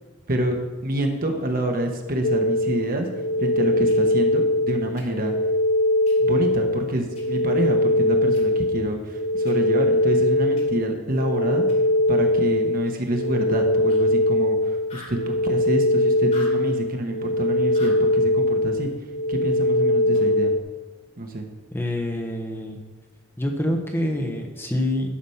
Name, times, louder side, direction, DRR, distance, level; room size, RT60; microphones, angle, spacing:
voice 1, 0.3-3.1 3.4-5.3 6.2-11.6 12.1-18.9 19.3-20.5 21.2-21.5, right 1 dB, 50° right, 3 dB, 1.3 m, -27 dB
sound 1, 2.2-20.6, left 1 dB, 65° left, 0.5 m, -22 dB
sound 2, 3.9-4.0 5.0-5.1 6.1-6.2 7.2-7.3 8.3-8.4 9.5-9.6 10.6-10.7 11.7-11.8 13.9-14.0 14.3-14.4 14.7-15.2 16.2-16.6 17.7-18.0 20.1-20.4, left 2 dB, 40° left, 3.1 m, -42 dB
voice 2, 21.7-22.8 23.4-25.2, left 1 dB, 10° left, 2 dB, 1.1 m, -26 dB
11.5 x 6.2 x 5.7 m, 1.3 s
head